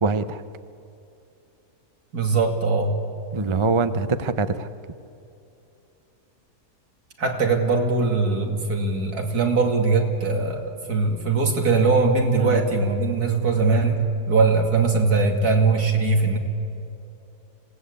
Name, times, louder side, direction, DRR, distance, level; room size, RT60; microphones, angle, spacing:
voice 1, 0.0-0.4 3.3-4.7 12.5-12.6, right 4 dB, 35° right, 12 dB, 0.5 m, -23 dB
voice 2, 2.1-2.9 7.2-14.0 14.3-16.4, right 4 dB, 70° right, 2 dB, 3.1 m, -21 dB
26.0 x 18.0 x 8.3 m, 2.7 s
omnidirectional pair, 1.7 m